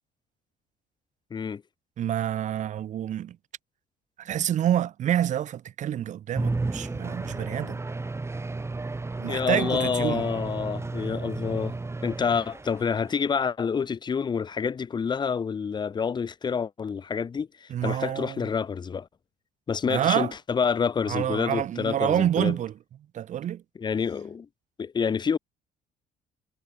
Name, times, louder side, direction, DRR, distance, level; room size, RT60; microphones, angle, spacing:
voice 1, 1.3-1.6 9.3-11.8 12.0-19.1 19.7-22.6 23.8-24.5 24.8-25.4, left 6 dB, 25° left, 0.6 m, -28 dB
voice 2, 2.0-3.4 4.2-7.8 9.2-10.3 17.7-18.5 19.9-20.3 21.1-22.7 23.1-23.6, right 11 dB, 45° right, 0.6 m, -27 dB
sound 1, 6.3-13.4, right 3 dB, 15° right, 2.4 m, -33 dB
cardioid pair, 110°, 17 cm